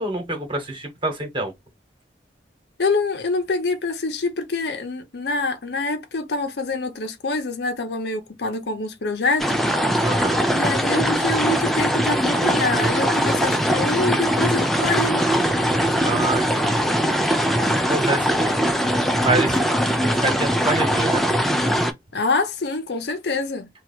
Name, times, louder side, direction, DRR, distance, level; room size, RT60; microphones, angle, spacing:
voice 1, 0.0-1.5 10.0-10.4 16.0-17.3 17.9-18.6 19.2-19.6 20.0-21.2, right 2 dB, 30° right, 1.4 m, -27 dB
voice 2, 2.8-9.7 10.1-10.2 10.5-15.3 22.1-23.7, left 3 dB, 65° left, 0.7 m, -26 dB
sound 1, 9.4-21.9, equal, ahead, 0.5 m, -21 dB
3.0 x 2.3 x 4.2 m
head